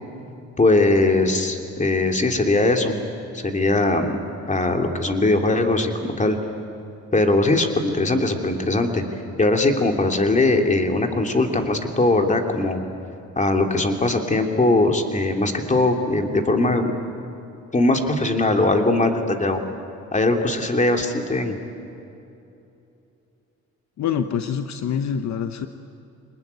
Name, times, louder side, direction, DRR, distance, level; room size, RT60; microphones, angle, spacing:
voice 1, 0.6-2.9 3.3-4.2 4.5-6.4 7.1-9.0 9.4-12.8 13.4-16.9 17.7-19.6 20.1-21.6, left 2 dB, 25° left, 4 dB, 3.0 m, -20 dB
voice 2, 24.0-25.7, left 8 dB, 65° left, 8 dB, 1.1 m, -25 dB
25.5 x 20.5 x 9.6 m, 2.8 s
cardioid pair, 90°, 30 cm